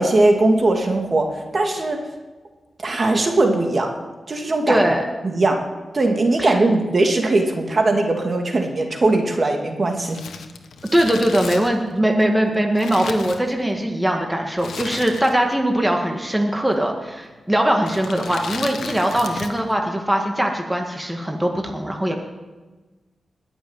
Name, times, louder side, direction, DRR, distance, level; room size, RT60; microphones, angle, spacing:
voice 1, 0.0-2.0 2.8-4.0 4.3-4.8 5.2-5.7 5.9-10.2, right 2 dB, 45° right, 3 dB, 2.3 m, -19 dB
voice 2, 4.7-5.0 6.4-6.6 10.9-22.1, right 1 dB, 10° right, 2 dB, 2.0 m, -21 dB
Crumpling crinkling, 9.9-13.9 14.6-15.6 15.9-16.0 16.8-17.1 17.8-19.7 20.0-20.1, left 6 dB, 90° left, 1.2 m, -35 dB
20.5 x 7.0 x 9.0 m, 1.2 s
cardioid pair, 80°, 0 cm